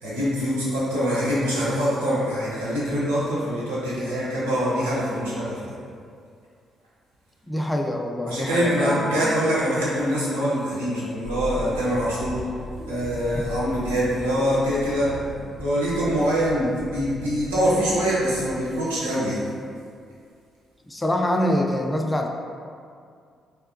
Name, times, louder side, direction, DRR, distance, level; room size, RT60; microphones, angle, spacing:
voice 1, 0.0-5.7 8.3-12.4 12.9-15.2 15.6-19.4, equal, 90° right, -8 dB, 0.8 m, -24 dB
voice 2, 7.5-9.2 20.9-22.3, left 1 dB, 15° left, 2 dB, 0.4 m, -25 dB
sound 1, 11.2-18.6, left 1 dB, 65° right, 1.1 m, -38 dB
3.5 x 3.3 x 2.7 m, 2.3 s
hypercardioid pair, 45°, 0 cm